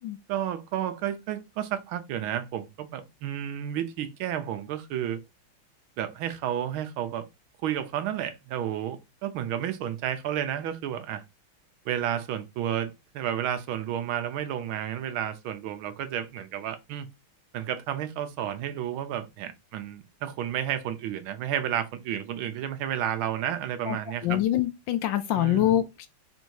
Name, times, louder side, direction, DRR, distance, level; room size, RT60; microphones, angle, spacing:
voice 1, 0.3-5.2 6.0-7.3 7.6-11.2 11.9-17.1 17.5-24.4 25.3-25.7, right 10 dB, 80° right, 1.5 m, -31 dB
voice 2, 24.2-26.1, left 12 dB, 75° left, 1.2 m, -25 dB
4.3 x 2.7 x 4.5 m
omnidirectional pair, 2.3 m